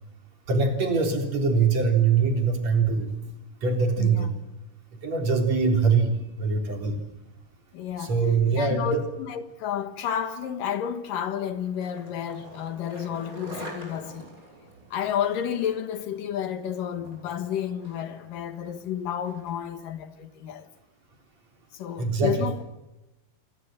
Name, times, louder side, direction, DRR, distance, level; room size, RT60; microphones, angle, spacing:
voice 1, 0.5-3.1 3.6-4.3 5.0-6.1 6.4-7.0 8.0-9.0 22.0-22.4, right 4 dB, 50° right, 4.6 m, -23 dB
voice 2, 4.0-4.4 7.7-8.2 8.6-14.3 14.9-20.7 21.7-22.6, left 9 dB, 70° left, 3.0 m, -31 dB
Skateboard, 11.4-19.7, right 1 dB, 20° right, 7.2 m, -46 dB
27.5 x 23.0 x 7.8 m
omnidirectional pair, 4.0 m